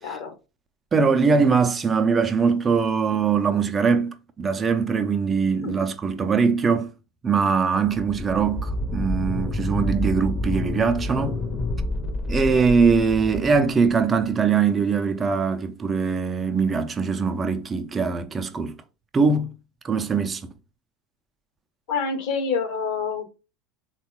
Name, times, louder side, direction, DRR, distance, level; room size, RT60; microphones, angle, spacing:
voice 1, 0.0-0.3 5.6-5.8 21.9-23.2, left 5 dB, 65° left, 0.9 m, -27 dB
voice 2, 0.9-6.9 7.2-11.4 12.3-18.8 19.1-19.5 19.8-20.5, right 5 dB, 25° right, 0.4 m, -22 dB
sound 1, 7.9-14.3, left 1 dB, 30° left, 0.7 m, -28 dB
3.5 x 2.2 x 3.0 m
hypercardioid pair, 85°, 0 cm